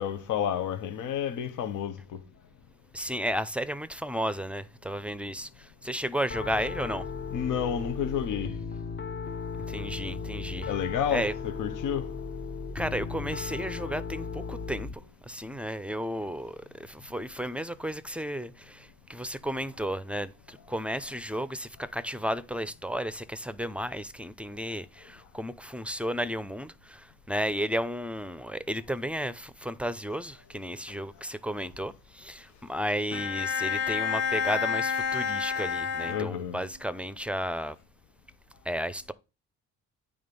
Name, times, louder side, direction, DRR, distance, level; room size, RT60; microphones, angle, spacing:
voice 1, 0.0-2.2 7.3-8.6 10.7-12.1 36.1-36.6, left 8 dB, 80° left, 0.9 m, -30 dB
voice 2, 2.9-7.1 9.7-10.7 11.1-11.3 12.7-37.8 38.6-39.1, equal, 5° right, 0.5 m, -33 dB
Piano, 6.3-14.9, left 5 dB, 35° left, 0.7 m, -36 dB
Bowed string instrument, 33.1-36.8, left 6 dB, 55° left, 1.2 m, -30 dB
8.7 x 3.5 x 5.3 m
cardioid pair, 90°, 30 cm